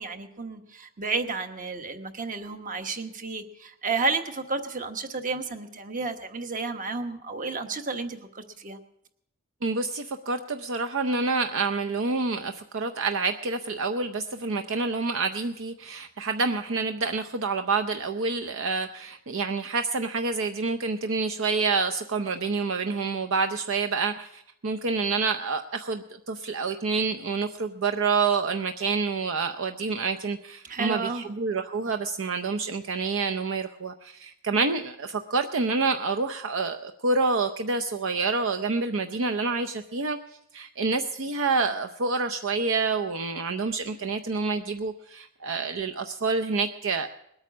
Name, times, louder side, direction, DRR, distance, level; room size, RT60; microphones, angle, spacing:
voice 1, 0.0-8.8 30.6-31.3, right 4 dB, 40° right, 7 dB, 1.2 m, -32 dB
voice 2, 9.6-40.2 40.5-47.1, right 4 dB, 60° right, 7 dB, 0.6 m, -28 dB
20.5 x 8.9 x 6.1 m, 0.77 s
head